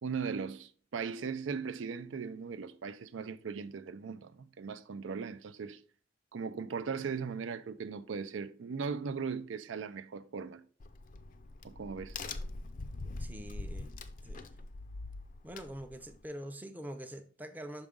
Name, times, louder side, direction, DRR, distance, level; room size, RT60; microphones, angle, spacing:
voice 1, 0.0-5.8 6.3-10.7 11.6-12.2, right 5 dB, 85° right, 0.4 m, -38 dB
Crack, 10.8-16.3, left 2 dB, 45° left, 0.5 m, -43 dB
voice 2, 13.2-13.9 14.2-14.5 15.4-17.9, right 1 dB, 10° right, 0.5 m, -44 dB
6.1 x 4.9 x 3.6 m
head